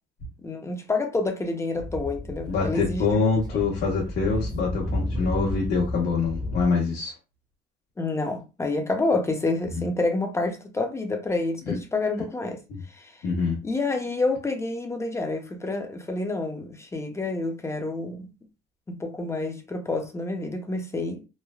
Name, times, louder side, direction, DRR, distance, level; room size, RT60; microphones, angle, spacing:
voice 1, 0.4-3.2 3.5-3.6 8.0-12.6 12.9-13.1 13.6-18.3 18.9-21.3, left 3 dB, 15° left, 0.5 m, -28 dB
Speech / Wind, 1.7-6.7, left 1 dB, 20° right, 0.7 m, -33 dB
voice 2, 2.5-7.1 11.7-11.8 12.7-12.8 13.2-13.6, left 4 dB, 70° left, 0.9 m, -25 dB
3.2 x 2.1 x 2.3 m
cardioid pair, 110°, 17 cm